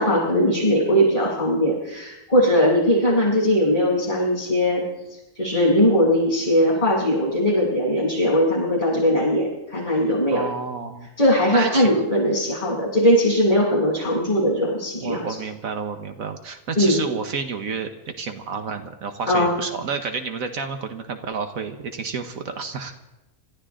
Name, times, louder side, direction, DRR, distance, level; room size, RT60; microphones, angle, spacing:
voice 1, 0.0-4.8 5.4-10.4 11.2-15.2 16.8-17.0 19.3-19.5, equal, 25° left, -6 dB, 7.8 m, -20 dB
voice 2, 10.3-11.1 11.5-12.0 15.0-22.9, right 5 dB, 75° right, 7 dB, 1.5 m, -30 dB
26.5 x 13.5 x 3.8 m, 0.97 s
omnidirectional pair, 1.5 m